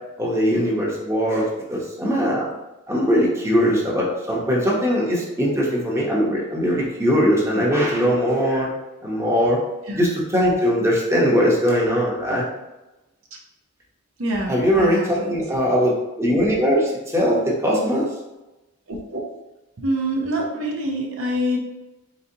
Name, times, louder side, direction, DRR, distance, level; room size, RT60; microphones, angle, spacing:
voice 1, 0.2-2.5 2.9-8.7 9.0-9.6 9.9-12.5 14.5-18.1, equal, 15° right, -4 dB, 0.9 m, -20 dB
voice 2, 14.2-15.4 18.9-19.2 19.8-21.6, equal, 75° right, 0 dB, 0.8 m, -26 dB
4.1 x 4.0 x 2.8 m, 1.0 s
head